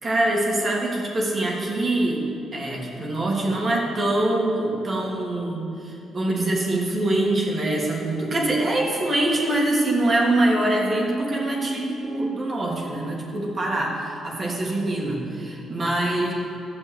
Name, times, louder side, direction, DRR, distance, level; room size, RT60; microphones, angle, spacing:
voice 1, 0.0-2.2 2.5-16.3, right 1 dB, 35° right, -3 dB, 2.8 m, -24 dB
13.0 x 7.2 x 8.2 m, 2.6 s
cardioid pair, 90°, 0 cm